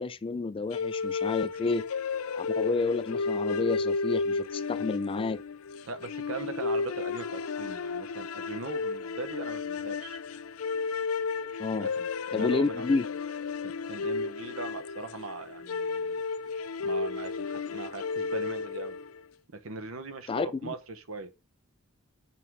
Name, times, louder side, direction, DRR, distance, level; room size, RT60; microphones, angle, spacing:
voice 1, 0.0-1.8 2.3-5.4 11.6-11.9 12.3-13.1 20.3-20.7, left 3 dB, 25° left, 0.3 m, -30 dB
sound 1, 0.7-19.2, left 4 dB, 85° left, 0.5 m, -33 dB
voice 2, 5.8-10.2 11.8-12.9 13.6-16.2 16.8-19.0 19.5-21.3, right 3 dB, 70° right, 1.0 m, -40 dB
5.7 x 4.7 x 5.5 m
head